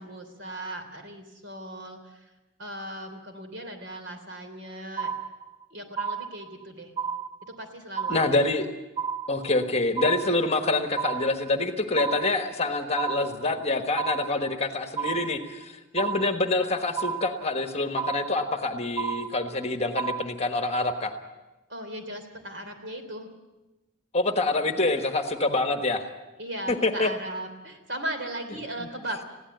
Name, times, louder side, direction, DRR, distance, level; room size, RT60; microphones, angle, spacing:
voice 1, 0.0-2.3 2.6-5.1 5.7-6.9 7.4-8.4 21.7-23.3 26.4-29.2, right 1 dB, 55° right, 6 dB, 3.3 m, -37 dB
sound 1, 5.0-5.6 6.0-6.6 7.0-7.6 8.0-8.6 9.0-9.6 10.0-10.6 11.0-11.6 12.0-12.6 13.0-13.6 14.0-14.6 15.0-15.6 16.0-16.6 17.0-17.6 18.0-18.6 19.0-19.6 20.0-20.3, right 7 dB, 25° right, 0.7 m, -32 dB
voice 2, 8.1-8.7 9.3-21.1 24.1-26.1 26.7-27.1 28.8-28.9, left 2 dB, 30° left, 6 dB, 1.4 m, -26 dB
21.5 x 16.0 x 7.9 m, 1.1 s
head